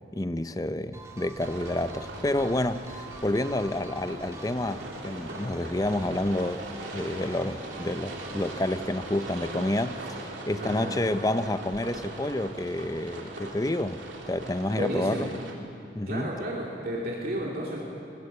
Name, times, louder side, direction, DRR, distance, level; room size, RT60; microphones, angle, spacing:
voice 1, 0.1-6.6 6.9-15.3 15.9-16.3, left 1 dB, 20° left, 12 dB, 0.6 m, -29 dB
sound 1, 0.9-8.7, right 2 dB, 15° right, 2.0 m, -46 dB
sound 2, 1.3-15.5, right 2 dB, 90° right, 3.0 m, -40 dB
voice 2, 10.6-11.0 14.7-15.3 16.1-17.8, equal, 50° right, -4 dB, 3.0 m, -32 dB
21.0 x 21.0 x 8.0 m, 2.6 s
head